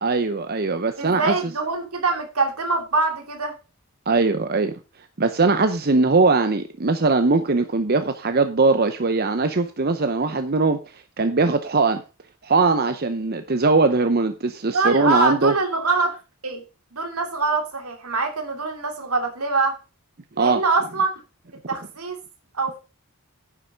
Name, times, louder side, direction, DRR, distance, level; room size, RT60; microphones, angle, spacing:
voice 1, 0.0-1.3 4.1-4.7 5.2-10.8 11.2-12.0 12.4-15.5 20.4-20.6, right 3 dB, 45° right, 9 dB, 0.8 m, -20 dB
voice 2, 1.0-3.5 14.7-16.2 16.4-16.6 16.9-19.7 20.4-21.1 21.7-22.2 22.5-22.8, right 3 dB, 80° right, 4 dB, 2.9 m, -24 dB
9.9 x 7.8 x 5.1 m, 0.29 s
head